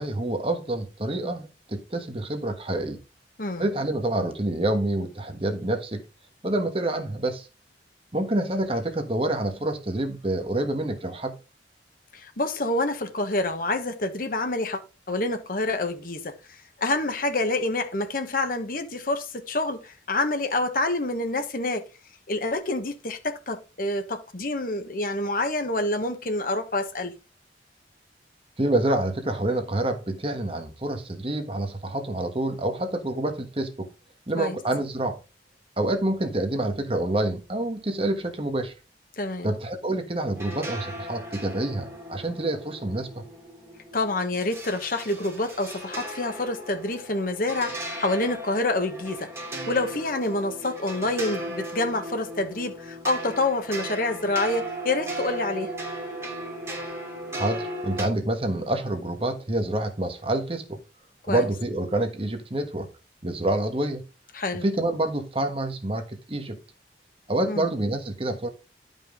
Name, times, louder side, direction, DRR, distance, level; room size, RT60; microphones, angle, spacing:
voice 1, 0.0-3.0 3.6-6.0 6.4-7.5 8.1-11.4 28.6-33.9 34.3-35.2 35.8-38.7 39.4-43.2 57.3-60.8 61.3-62.9 63.2-64.0 64.6-66.6 67.3-68.5, right 1 dB, 30° right, 1.3 m, -27 dB
voice 2, 12.1-21.8 22.3-27.1 34.4-34.6 39.2-39.5 43.9-49.3 49.7-55.7 61.3-61.4 64.3-64.6 67.5-67.7, left 2 dB, 50° left, 1.2 m, -27 dB
sound 1, 40.3-58.1, right 1 dB, 15° right, 2.9 m, -37 dB
11.5 x 5.4 x 3.7 m
head